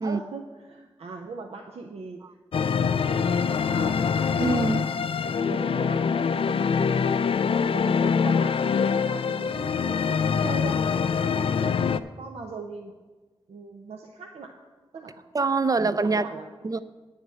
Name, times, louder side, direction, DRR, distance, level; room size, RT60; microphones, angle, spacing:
voice 1, 0.0-2.2 2.6-4.0 5.4-7.0 7.4-12.9 13.5-14.6 14.9-15.2 15.7-16.5, right 4 dB, 80° right, 0.8 m, -40 dB
sound 1, 2.5-12.0, left 6 dB, 60° left, 0.4 m, -24 dB
voice 2, 4.4-4.9 15.3-16.2 16.6-16.8, right 3 dB, 35° right, 0.5 m, -24 dB
9.3 x 5.8 x 7.7 m
cardioid pair, 55°, 10 cm